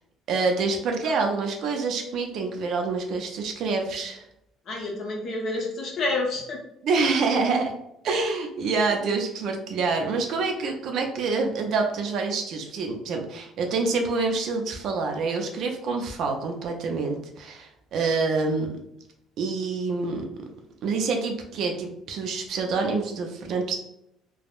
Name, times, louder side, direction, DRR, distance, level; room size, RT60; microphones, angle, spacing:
voice 1, 0.3-4.2 6.8-7.7 8.0-18.7 19.4-20.3 20.8-23.7, right 4 dB, 50° right, 3 dB, 0.4 m, -26 dB
voice 2, 4.7-6.6, left 2 dB, 35° left, -1 dB, 0.7 m, -29 dB
3.4 x 2.1 x 2.3 m, 0.80 s
cardioid pair, 180°, 0 cm